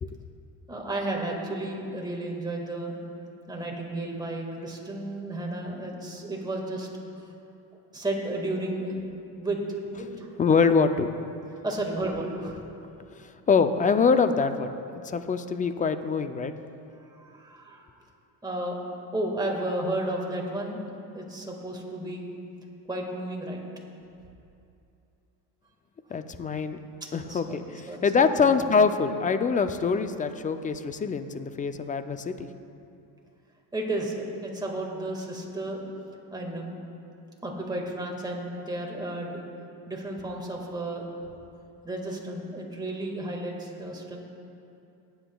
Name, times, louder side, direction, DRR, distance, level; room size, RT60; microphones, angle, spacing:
voice 1, 0.7-2.9 3.5-6.9 7.9-8.9 9.4-9.6 9.9-10.3 11.6-12.6 16.9-17.9 18.4-18.8 19.1-20.9 21.1-22.2 22.9-23.6 27.0-28.1 28.4-28.7 33.7-35.8 36.3-36.7 37.4-39.4 39.9-41.0 41.8-44.2, right 1 dB, 10° right, -1 dB, 1.7 m, -33 dB
voice 2, 10.4-11.1 13.1-14.7 15.0-16.5 26.1-26.8 27.1-32.5, left 5 dB, 20° left, 10 dB, 0.3 m, -24 dB
18.0 x 8.0 x 2.3 m, 2.7 s
cardioid pair, 105°, 41 cm